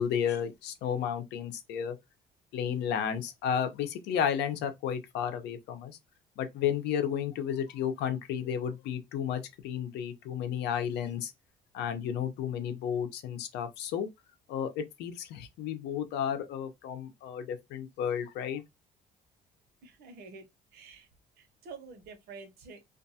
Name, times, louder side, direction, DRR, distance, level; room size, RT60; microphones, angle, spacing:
voice 1, 0.0-2.0 2.5-6.0 6.4-11.3 11.7-14.1 14.5-18.6, left 8 dB, 80° left, 0.7 m, -32 dB
voice 2, 19.8-20.4 20.7-21.1 21.4-22.8, right 4 dB, 70° right, 1.0 m, -48 dB
2.5 x 2.3 x 2.7 m
cardioid pair, 110°, 17 cm